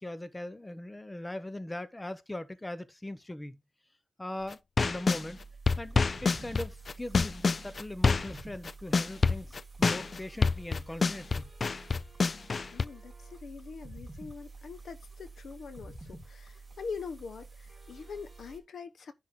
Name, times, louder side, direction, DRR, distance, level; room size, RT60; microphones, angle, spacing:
voice 1, 0.0-3.6 4.2-5.4 5.8-11.5, left 1 dB, 15° left, 0.9 m, -40 dB
sound 1, 4.5-5.2 5.7-8.4 8.6-12.8, left 4 dB, 45° left, 0.4 m, -27 dB
sound 2, 4.9-18.6, right 3 dB, 15° right, 3.4 m, -49 dB
voice 2, 12.7-19.1, left 5 dB, 80° left, 1.0 m, -43 dB
10.5 x 3.6 x 5.9 m
wide cardioid pair, 125°, 0 cm